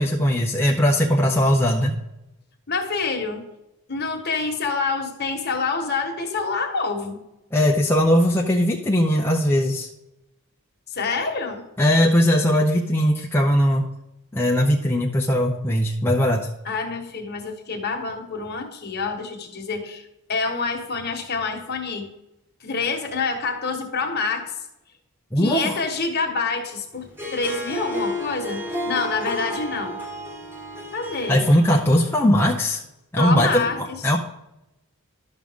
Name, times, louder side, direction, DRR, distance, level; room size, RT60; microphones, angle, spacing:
voice 1, 0.0-1.9 7.5-9.9 11.8-13.9 14.3-16.5 25.3-25.8 31.3-32.8 33.1-34.2, equal, 10° left, -2 dB, 0.6 m, -19 dB
voice 2, 2.7-3.4 3.9-7.2 10.9-11.7 16.6-22.1 22.6-24.5 25.4-30.0 30.9-31.5 33.1-34.0, left 4 dB, 45° left, 4 dB, 1.3 m, -27 dB
Harp, 27.0-32.5, equal, 10° right, 1.4 m, -32 dB
12.0 x 6.2 x 3.6 m, 0.90 s
head